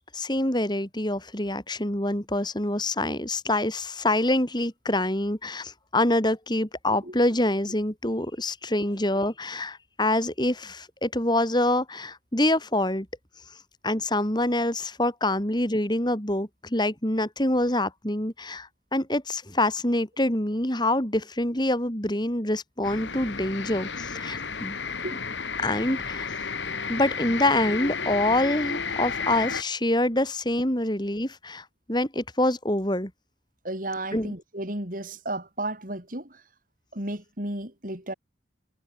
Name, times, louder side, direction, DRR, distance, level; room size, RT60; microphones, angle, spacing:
voice 1, 0.1-13.1 13.8-24.8 25.6-26.3 26.9-33.1 34.1-34.3, left 1 dB, 25° left, 4.3 m, -26 dB
sound 1, 22.8-29.6, left 5 dB, 85° left, 2.4 m, -32 dB
voice 2, 33.6-36.4 36.9-38.1, right 1 dB, 50° right, 6.1 m, -33 dB
head